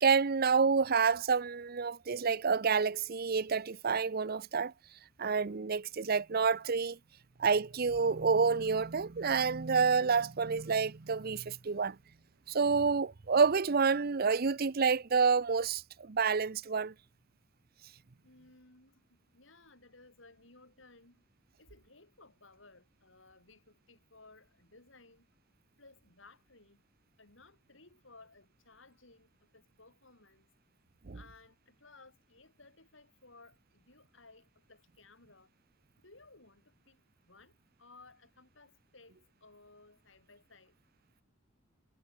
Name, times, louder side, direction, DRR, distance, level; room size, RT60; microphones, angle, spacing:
voice 1, 0.0-4.7 5.2-7.0 7.4-12.0 12.5-16.9 31.1-31.2, right 5 dB, 50° right, 0.7 m, -28 dB
voice 2, 18.2-21.2 21.6-25.3 25.8-26.8 27.2-30.5 31.1-35.5 36.0-40.8, left 3 dB, 75° left, 7.9 m, -59 dB
head